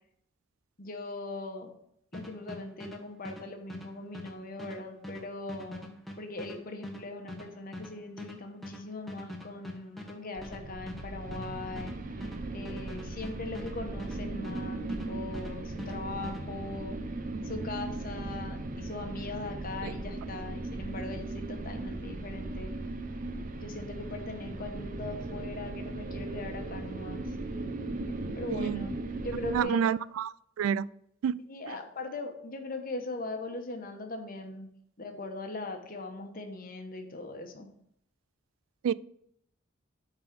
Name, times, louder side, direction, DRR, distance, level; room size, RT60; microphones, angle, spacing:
voice 1, 0.8-1.7 2.1-12.2 12.5-17.0 17.4-22.7 23.6-27.3 28.3-29.9 31.5-34.7 35.0-37.7, left 2 dB, 45° left, 5 dB, 1.1 m, -40 dB
sound 1, 2.1-15.1 15.3-16.4, left 1 dB, ahead, 1.1 m, -44 dB
sound 2, 10.4-29.6, right 2 dB, 40° right, 0.7 m, -38 dB
voice 2, 28.5-28.9 29.5-30.3 30.6-30.9 31.2-31.4 38.8-38.9, right 8 dB, 85° right, 18 dB, 0.3 m, -28 dB
8.6 x 4.0 x 6.0 m, 0.72 s
head